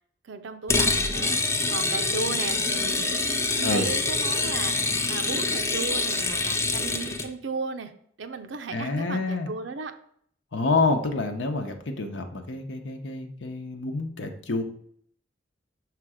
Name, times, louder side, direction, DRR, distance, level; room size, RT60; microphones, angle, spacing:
voice 1, 0.2-1.4 1.7-7.9 8.2-9.9, right 4 dB, 80° right, 8 dB, 0.6 m, -35 dB
sound 1, 0.7-7.3, left 3 dB, 15° left, 0.5 m, -26 dB
voice 2, 8.7-9.5 10.5-14.6, left 3 dB, 85° left, 5 dB, 0.9 m, -27 dB
5.9 x 3.3 x 4.9 m, 0.64 s
head